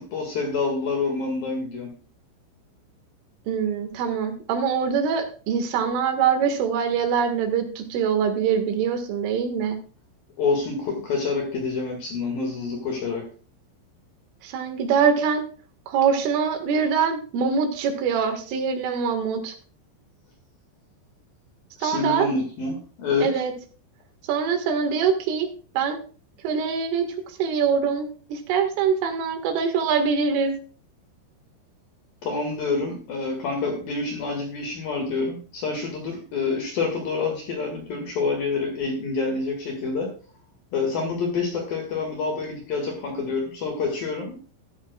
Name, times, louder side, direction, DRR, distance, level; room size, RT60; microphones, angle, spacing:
voice 1, 0.0-1.9 10.4-13.3 21.8-23.3 32.2-40.1 40.7-44.4, left 4 dB, 55° left, 2 dB, 3.3 m, -27 dB
voice 2, 3.5-9.8 14.4-15.5 15.9-19.6 21.8-22.3 23.2-23.5 24.3-25.5 25.8-26.0 26.4-27.1 27.4-30.6, right 6 dB, 80° right, 6 dB, 4.3 m, -23 dB
13.5 x 13.0 x 2.4 m, 0.39 s
omnidirectional pair, 5.7 m